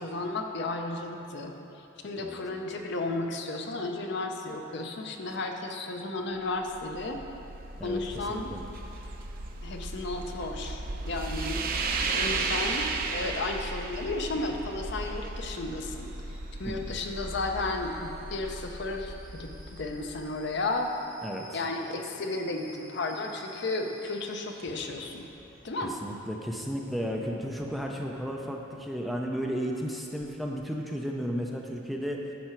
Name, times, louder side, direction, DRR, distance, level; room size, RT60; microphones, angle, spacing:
voice 1, 0.0-1.5 2.0-7.2 7.8-8.5 9.6-16.1 16.6-20.9 21.5-25.3 25.6-25.9, left 2 dB, 60° left, 3 dB, 0.7 m, -33 dB
sound 1, 6.5-20.7, right 3 dB, 45° right, 0.6 m, -35 dB
voice 2, 8.3-8.6 16.7-16.9 21.2-21.6 25.8-32.2, equal, ahead, 0 dB, 0.5 m, -34 dB
Alarm / Boiling, 12.1-26.3, equal, 20° right, 1.9 m, -55 dB
sound 2, 24.6-30.5, left 1 dB, 85° left, 2.1 m, -53 dB
10.5 x 5.8 x 4.5 m, 3.0 s
head